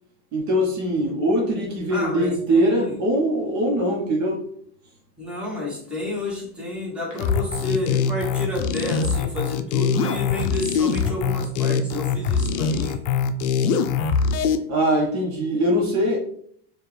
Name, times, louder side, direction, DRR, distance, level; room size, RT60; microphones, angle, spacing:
voice 1, 0.3-4.4 14.7-16.2, equal, 40° right, -1 dB, 1.1 m, -22 dB
voice 2, 1.9-3.0 5.2-13.0, left 2 dB, 5° right, -5 dB, 1.3 m, -30 dB
sound 1, 7.2-14.6, left 6 dB, 70° left, 0.5 m, -23 dB
4.4 x 2.5 x 3.2 m, 0.63 s
supercardioid pair, 115°, 42 cm